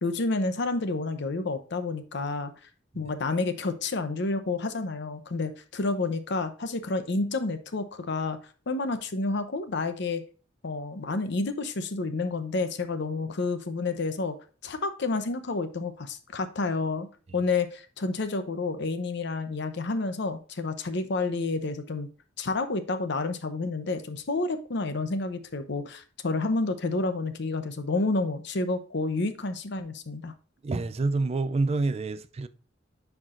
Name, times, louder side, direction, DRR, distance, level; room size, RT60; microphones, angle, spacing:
voice 1, 0.0-2.5 2.9-8.4 8.7-10.2 10.6-14.4 14.6-17.1 17.3-22.1 22.4-30.3, left 3 dB, 65° left, 0.7 m, -29 dB
voice 2, 30.6-32.5, right 3 dB, 35° right, 0.4 m, -28 dB
9.6 x 4.6 x 2.5 m
head